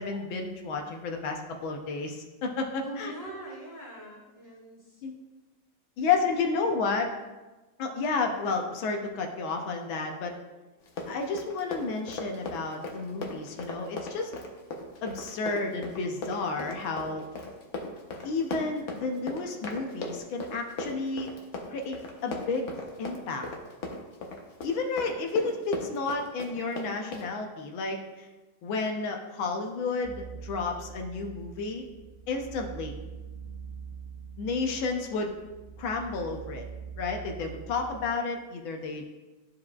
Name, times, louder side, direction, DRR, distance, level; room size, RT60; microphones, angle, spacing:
voice 1, 0.0-3.1 5.0-5.1 6.0-7.1 7.8-10.3 11.0-14.3 15.0-17.2 18.2-21.3 21.7-22.7 23.0-23.4 24.6-28.3 28.6-31.8 32.3-33.0 34.4-35.4 35.8-36.6 37.0-39.0, left 4 dB, 75° left, 3 dB, 1.5 m, -31 dB
voice 2, 2.8-5.0 6.0-6.7, right 1 dB, 20° right, -6 dB, 1.7 m, -44 dB
Run, 10.8-27.3, left 2 dB, 50° left, 0.9 m, -38 dB
sound 1, 30.0-38.1, right 6 dB, 85° right, 0.7 m, -44 dB
13.0 x 4.8 x 2.4 m, 1.2 s
omnidirectional pair, 2.2 m